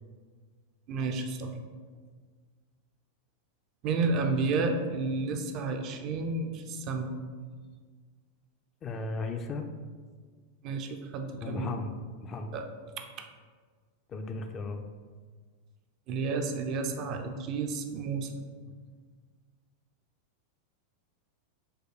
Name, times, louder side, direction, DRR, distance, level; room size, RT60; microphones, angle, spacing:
voice 1, 0.9-1.5 3.8-7.1 10.6-11.7 12.5-12.6 13.0-13.3 16.1-18.3, right 4 dB, 40° right, 5 dB, 0.4 m, -31 dB
voice 2, 8.8-9.7 11.4-12.5 14.1-14.8, left 3 dB, 25° left, 5 dB, 0.3 m, -36 dB
4.6 x 2.2 x 4.6 m, 1.6 s
figure-of-eight pair, 90°, 0 cm